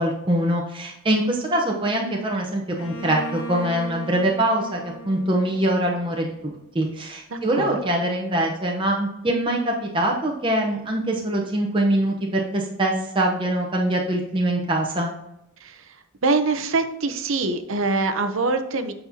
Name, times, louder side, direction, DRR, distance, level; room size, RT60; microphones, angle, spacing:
voice 1, 0.0-15.1, right 1 dB, 20° right, -1 dB, 0.8 m, -23 dB
Bowed string instrument, 2.8-6.5, right 1 dB, 70° left, 1.0 m, -37 dB
voice 2, 7.3-7.8 15.6-18.9, right 3 dB, 65° right, 8 dB, 0.7 m, -24 dB
8.4 x 5.4 x 2.8 m, 0.87 s
head